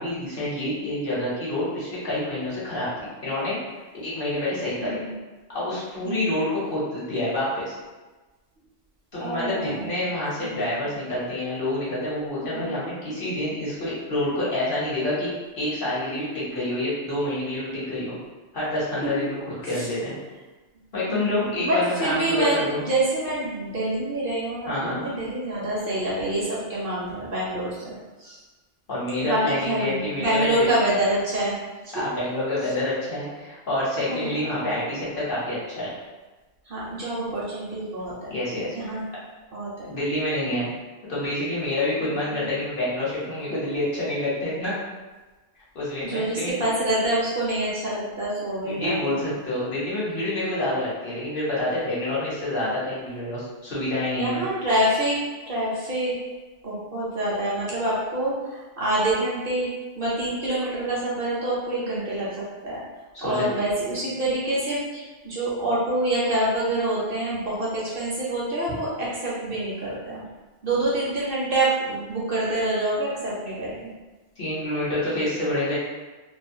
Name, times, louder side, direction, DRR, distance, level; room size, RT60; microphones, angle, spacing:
voice 1, 0.0-2.9 3.2-3.6 4.0-5.0 5.5-7.7 9.1-15.3 15.6-18.2 18.5-19.4 19.6-20.1 20.9-22.8 24.7-25.0 28.9-30.7 31.9-35.9 38.3-39.0 39.8-40.7 41.1-44.8 45.7-46.6 48.6-54.4 63.1-63.4 74.4-75.8, left 1 dB, 50° left, -8 dB, 0.9 m, -27 dB
voice 2, 4.8-5.1 6.0-6.4 9.1-9.9 10.4-10.8 12.5-12.7 19.7-19.9 21.1-28.4 29.2-31.5 31.8-31.9 34.0-34.7 36.7-38.3 38.7-39.0 39.5-40.0 40.4-40.5 42.3-42.5 46.0-49.0 54.2-55.2 55.5-56.1 56.6-59.7 59.9-62.8 63.2-70.2 70.6-73.9, right 1 dB, 55° right, -7 dB, 0.8 m, -26 dB
2.4 x 2.2 x 2.6 m, 1.2 s
omnidirectional pair, 1.2 m